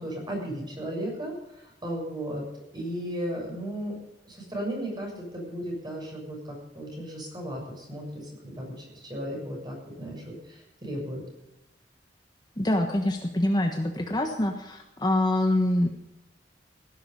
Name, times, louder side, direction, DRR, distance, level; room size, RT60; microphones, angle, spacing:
voice 1, 0.0-2.4 2.7-4.0 4.2-11.2, equal, 25° right, -1 dB, 6.7 m, -35 dB
voice 2, 12.6-15.9, left 1 dB, 25° left, 4 dB, 1.3 m, -25 dB
17.0 x 11.0 x 5.4 m, 0.92 s
head